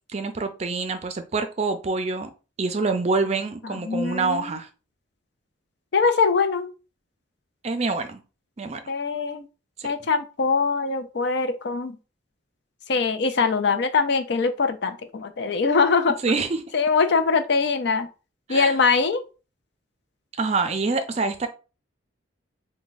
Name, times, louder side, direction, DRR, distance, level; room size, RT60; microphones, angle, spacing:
voice 1, 0.1-2.3 2.6-4.7 7.6-8.2 8.6-8.8 9.8-9.9 16.2-16.6 18.5-18.8 20.4-21.5, right 3 dB, 35° right, 8 dB, 0.4 m, -26 dB
voice 2, 3.6-4.5 5.9-6.7 8.9-9.5 9.8-12.0 12.9-16.2 16.7-18.1 18.5-19.2, left 4 dB, 60° left, 8 dB, 0.5 m, -22 dB
3.4 x 2.2 x 3.9 m, 0.32 s
head